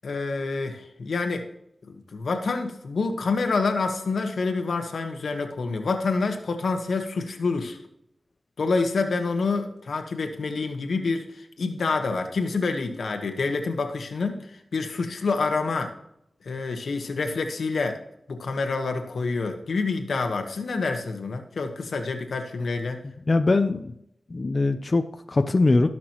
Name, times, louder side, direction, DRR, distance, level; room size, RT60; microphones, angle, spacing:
voice 1, 0.0-1.5 1.9-7.8 8.6-15.9 16.4-18.0 18.3-23.0, left 4 dB, 85° left, 5 dB, 1.3 m, -27 dB
voice 2, 23.3-23.9 24.3-25.9, left 3 dB, 45° left, 7 dB, 0.6 m, -22 dB
17.5 x 6.0 x 3.0 m, 0.77 s
wide cardioid pair, 65°, 0 cm